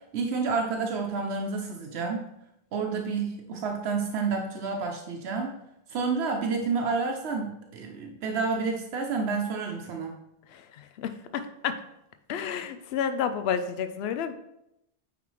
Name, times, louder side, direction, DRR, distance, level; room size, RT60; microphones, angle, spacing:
voice 1, 0.1-2.2 2.7-5.6 5.9-10.1, right 4 dB, 90° right, 2 dB, 1.0 m, -29 dB
voice 2, 11.0-11.7 12.3-14.3, left 7 dB, 80° left, 9 dB, 0.8 m, -30 dB
9.2 x 3.7 x 3.1 m, 0.83 s
omnidirectional pair, 1.1 m